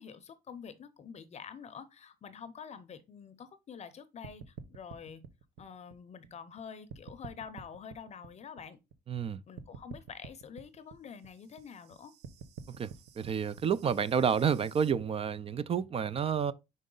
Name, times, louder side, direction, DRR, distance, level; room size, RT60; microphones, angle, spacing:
voice 1, 0.0-5.2 5.6-8.8 9.5-12.1, left 7 dB, 40° left, 0.6 m, -47 dB
sound 1, 4.2-6.6 6.9-9.3 9.6-15.0, right 7 dB, 80° right, 0.8 m, -49 dB
voice 2, 9.1-9.4 12.8-12.9 13.2-16.5, right 7 dB, 35° right, 0.4 m, -29 dB
5.3 x 4.7 x 3.8 m
cardioid pair, 110°, 17 cm